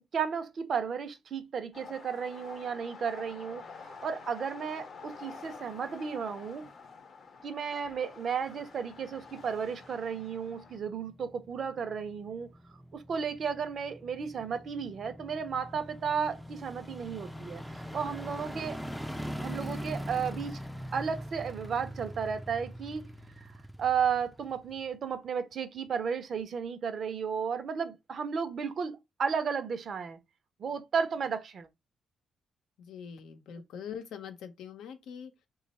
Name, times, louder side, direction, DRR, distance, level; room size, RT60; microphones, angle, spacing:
voice 1, 0.1-6.7 7.4-12.5 12.9-17.6 17.9-18.8 19.4-20.6 20.9-23.1 23.4-23.5 23.8-30.2 30.6-31.7, right 6 dB, 55° right, 0.7 m, -33 dB
sound 1, 1.7-10.8, left 5 dB, 50° left, 0.8 m, -48 dB
sound 2, 8.6-25.2 25.5-25.6, equal, ahead, 0.4 m, -43 dB
voice 2, 32.8-35.3, left 7 dB, 90° left, 0.6 m, -43 dB
3.1 x 2.4 x 4.0 m
cardioid pair, 100°, 0 cm